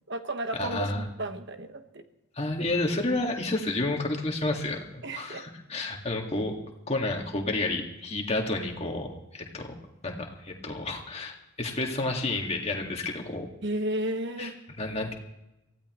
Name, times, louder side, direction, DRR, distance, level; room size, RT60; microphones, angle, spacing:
voice 1, 0.1-2.0 5.0-5.4 13.6-14.6, right 1 dB, 55° right, 7 dB, 1.3 m, -33 dB
voice 2, 0.6-1.0 2.4-6.5 6.9-9.1 9.3-9.7 10.0-13.5 14.4-14.5 14.8-15.1, left 2 dB, 30° left, 1 dB, 2.0 m, -30 dB
23.5 x 16.0 x 3.1 m, 0.93 s
head